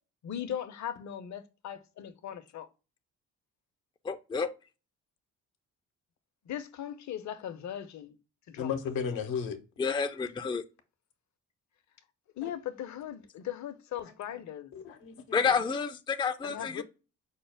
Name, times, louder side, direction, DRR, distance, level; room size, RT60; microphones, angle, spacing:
voice 1, 0.2-2.6 6.4-8.2 8.5-8.7 12.4-14.7 16.4-16.8, left 10 dB, 55° left, 0.7 m, -39 dB
voice 2, 4.0-4.5 9.8-10.6 15.3-16.8, left 5 dB, 15° left, 0.4 m, -29 dB
voice 3, 8.6-9.6 12.4-12.5 14.0-14.4 14.7-15.5, left 6 dB, 80° left, 0.9 m, -35 dB
5.5 x 2.1 x 3.2 m
supercardioid pair, 60°, 35 cm